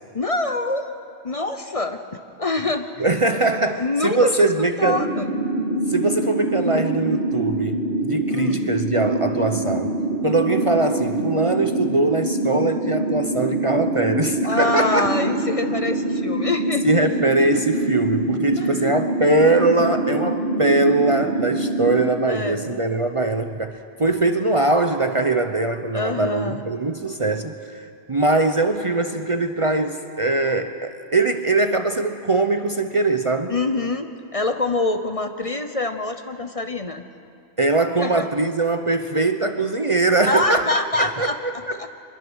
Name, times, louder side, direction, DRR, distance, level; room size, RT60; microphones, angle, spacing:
voice 1, 0.1-0.9 1.2-2.0 2.4-2.8 3.8-4.5 4.8-5.3 8.3-8.6 14.4-16.9 18.6-18.8 22.3-22.8 25.9-26.6 33.5-37.0 38.0-38.3 40.3-41.9, left 2 dB, 35° left, 7 dB, 0.9 m, -25 dB
voice 2, 3.0-5.1 5.9-10.0 10.2-15.1 16.8-33.6 37.6-41.9, right 2 dB, 35° right, 7 dB, 0.7 m, -21 dB
sound 1, 4.8-22.0, right 2 dB, 85° right, 3.2 m, -25 dB
24.5 x 21.5 x 6.3 m, 2.5 s
omnidirectional pair, 1.1 m